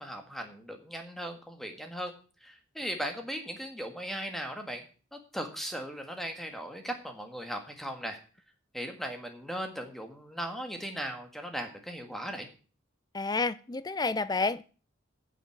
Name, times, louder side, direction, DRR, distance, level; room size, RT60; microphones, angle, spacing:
voice 1, 0.0-2.1 2.4-4.8 5.1-8.2 8.7-12.5, equal, ahead, 1.7 m, -38 dB
voice 2, 13.1-14.6, left 3 dB, 20° left, 0.5 m, -29 dB
9.3 x 7.6 x 7.4 m
head